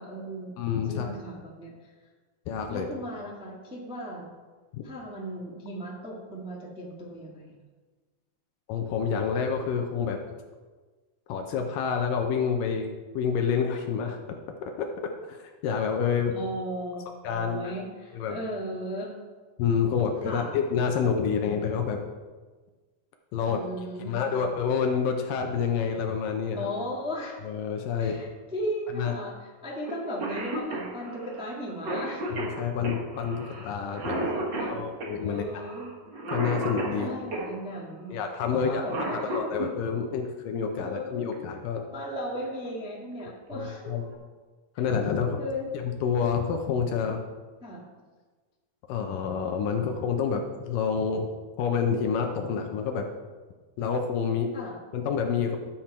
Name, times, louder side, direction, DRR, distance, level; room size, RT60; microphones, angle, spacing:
voice 1, 0.0-0.6 0.8-1.9 2.7-4.3 4.8-7.5 16.3-17.0 17.3-19.1 20.2-20.5 23.4-24.5 26.5-27.4 28.0-32.2 34.1-34.8 35.2-35.9 37.0-38.1 38.5-39.3 40.8-41.4 41.9-43.9 45.2-45.7 47.6-47.8 54.5-54.7, equal, 5° right, -4 dB, 0.6 m, -36 dB
voice 2, 0.6-1.1 2.5-2.9 4.7-4.8 8.7-10.2 11.3-12.9 13.1-14.2 14.6-14.9 15.3-16.4 17.2-17.6 18.1-18.4 19.6-22.0 23.3-23.6 24.1-26.7 27.4-28.2 28.9-29.1 32.3-34.3 34.7-35.7 36.3-37.1 38.1-38.8 39.1-41.8 43.5-44.1 44.8-45.4 45.7-47.2 48.9-51.3 51.6-53.1 53.8-54.5 54.9-55.6, left 6 dB, 75° left, 4 dB, 2.2 m, -28 dB
Cough, 29.9-30.0 30.2-37.5 38.6-39.7 41.3-41.4 42.5-42.7 43.2-43.3 43.7-44.1, right 1 dB, 60° right, 1.1 m, -33 dB
12.0 x 7.4 x 4.4 m, 1.4 s
omnidirectional pair, 4.4 m